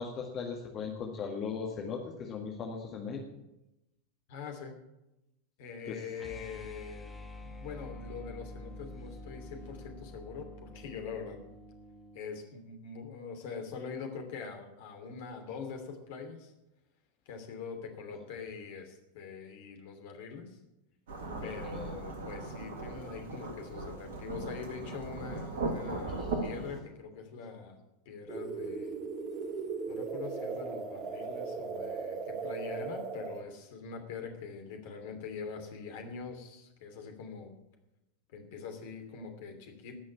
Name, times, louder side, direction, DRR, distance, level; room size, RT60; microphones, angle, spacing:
voice 1, 0.0-3.2 5.9-6.0 21.4-21.9 26.2-26.3, left 5 dB, 30° left, 0 dB, 1.9 m, -38 dB
voice 2, 4.3-4.8 5.6-7.1 7.4-11.4 12.1-16.5 17.3-20.6 21.4-27.8 28.0-29.0 29.9-37.5 38.3-40.0, left 5 dB, 50° left, 4 dB, 2.9 m, -43 dB
sound 1, 6.1-12.2, left 1 dB, 5° left, 2.2 m, -47 dB
Thunderstorm / Rain, 21.1-26.8, right 2 dB, 60° right, 2.2 m, -38 dB
sound 2, 28.3-33.4, right 4 dB, 30° right, 1.6 m, -37 dB
19.0 x 6.4 x 8.6 m, 0.95 s
figure-of-eight pair, 90°, 0 cm